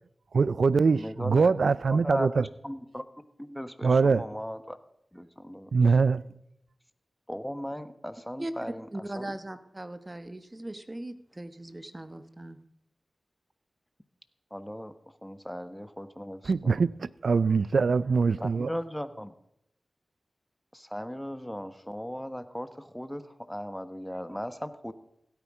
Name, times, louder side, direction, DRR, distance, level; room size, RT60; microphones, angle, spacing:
voice 1, 0.3-2.4 3.8-4.2 5.7-6.2 16.5-18.7, right 4 dB, 75° right, 0.4 m, -23 dB
voice 2, 0.9-1.5 2.0-4.8 5.1-5.7 7.3-9.4 14.5-14.9 15.2-16.8 18.4-19.3 20.7-24.9, equal, 5° left, 1.3 m, -37 dB
voice 3, 8.9-12.6, right 1 dB, 25° right, 1.3 m, -39 dB
16.0 x 9.5 x 4.9 m
cardioid pair, 40°, 0 cm